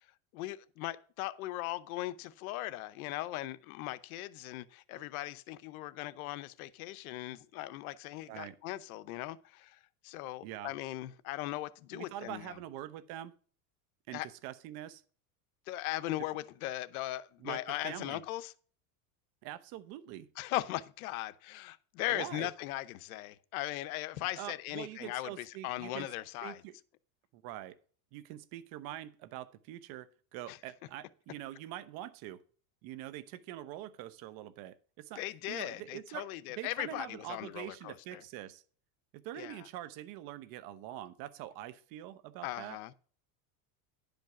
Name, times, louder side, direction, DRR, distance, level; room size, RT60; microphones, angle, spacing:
voice 1, 0.3-12.6 14.1-14.3 15.7-18.5 20.4-26.6 30.5-30.6 35.2-38.2 39.3-39.7 42.4-42.9, left 16 dB, 80° left, 0.8 m, -39 dB
voice 2, 10.4-10.7 11.9-13.3 14.1-15.0 17.4-18.2 19.4-20.3 22.1-22.5 24.4-26.1 26.4-26.7 27.3-27.8 28.1-32.4 32.8-38.6 39.1-42.8, right 13 dB, 55° right, 0.9 m, -44 dB
11.0 x 5.3 x 5.8 m
supercardioid pair, 130°, 42 cm